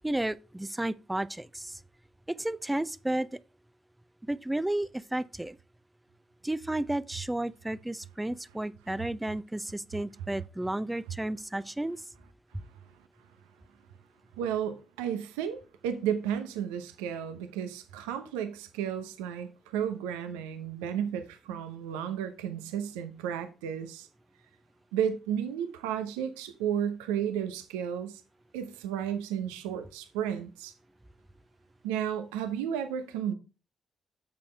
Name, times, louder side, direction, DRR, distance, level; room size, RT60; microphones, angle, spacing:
voice 1, 0.0-1.8 2.3-3.3 4.3-5.6 6.4-12.0, right 1 dB, 10° right, 0.6 m, -32 dB
voice 2, 14.4-24.1 24.9-28.2 28.5-30.7 31.8-33.3, right 9 dB, 80° right, 0.8 m, -33 dB
9.0 x 6.9 x 3.4 m
hypercardioid pair, 40°, 0 cm